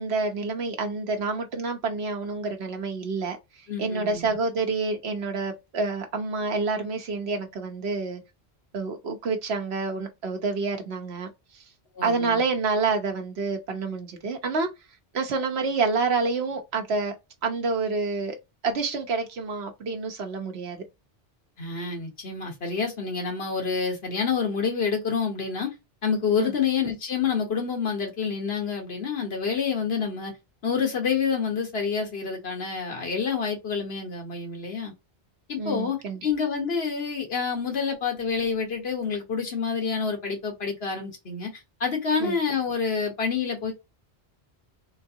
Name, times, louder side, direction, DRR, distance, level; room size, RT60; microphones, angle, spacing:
voice 1, 0.0-8.2 8.7-11.3 12.0-14.7 15.1-17.2 17.4-18.4 18.6-20.8 26.4-26.5 35.6-36.2 42.2-42.4, right 4 dB, 90° right, 1.2 m, -28 dB
voice 2, 3.7-4.4 11.9-12.4 21.6-25.7 26.0-30.3 30.6-34.9 35.5-36.0 36.2-43.7, left 6 dB, 75° left, 1.5 m, -28 dB
3.8 x 2.5 x 2.8 m
omnidirectional pair, 1.0 m